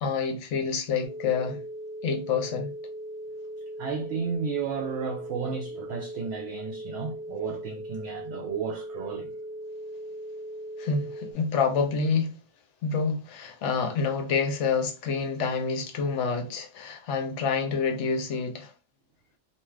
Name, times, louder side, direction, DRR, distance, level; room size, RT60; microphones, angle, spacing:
voice 1, 0.0-1.6 2.0-2.7 10.8-12.3 12.8-18.7, left 5 dB, 75° left, 0.9 m, -27 dB
sound 1, 1.0-11.3, right 1 dB, 35° left, 0.7 m, -39 dB
voice 2, 3.8-9.4, right 6 dB, 65° right, 0.7 m, -33 dB
2.4 x 2.4 x 3.1 m
omnidirectional pair, 1.3 m